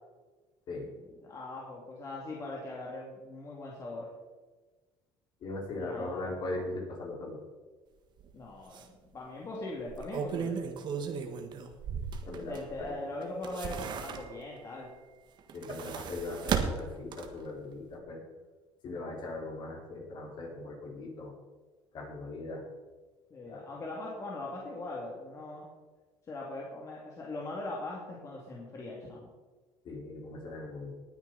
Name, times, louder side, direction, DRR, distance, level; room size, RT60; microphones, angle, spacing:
voice 1, 0.8-4.1 5.8-6.6 8.3-10.6 12.4-14.9 23.3-25.6 26.3-29.3, left 2 dB, 30° left, -3 dB, 2.5 m, -41 dB
voice 2, 5.4-7.4 12.3-12.5 12.8-12.9 15.5-18.2 18.8-21.3 21.9-22.6 23.5-23.6 29.8-30.9, left 2 dB, 50° left, -2 dB, 4.6 m, -39 dB
sound 1, 8.2-8.3 8.7-8.8 9.8-12.8 13.2-14.6 15.4-17.5 17.9-18.0, right 6 dB, 50° right, 1.5 m, -35 dB
19.0 x 9.4 x 4.1 m, 1.3 s
cardioid pair, 125°, 10 cm